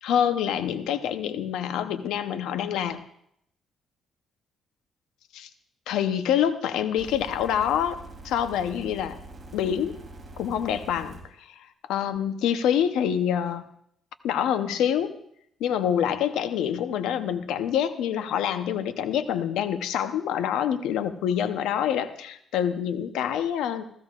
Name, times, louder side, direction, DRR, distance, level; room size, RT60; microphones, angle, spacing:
voice 1, 0.0-3.0 5.3-5.5 5.9-8.0 8.2-9.2 9.5-10.0 10.4-13.7 14.2-15.2 15.6-23.8, left 9 dB, 90° left, 10 dB, 0.8 m, -26 dB
sound 1, 7.0-11.2 12.2-12.3, right 2 dB, 30° right, 3.2 m, -44 dB
15.5 x 15.0 x 2.5 m, 0.72 s
cardioid pair, 90°, 0 cm